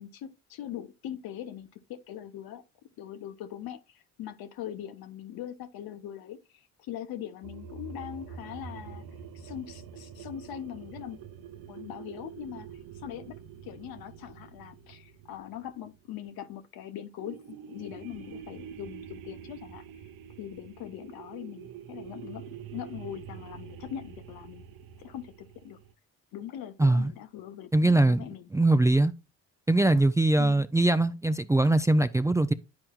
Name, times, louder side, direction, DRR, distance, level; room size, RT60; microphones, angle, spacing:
voice 1, 0.0-2.6 3.0-6.4 6.8-9.0 9.3-11.2 11.7-12.7 12.9-19.8 20.4-24.6 25.0-25.8 26.3-28.5 30.4-30.6, left 11 dB, 70° left, 0.9 m, -41 dB
sound 1, 7.4-16.5 17.2-25.9, right 8 dB, 65° right, 0.7 m, -46 dB
voice 2, 26.8-27.1 27.7-28.2 28.5-29.1 29.7-32.5, right 2 dB, 10° right, 0.4 m, -22 dB
10.5 x 4.4 x 2.3 m
hypercardioid pair, 50°, 38 cm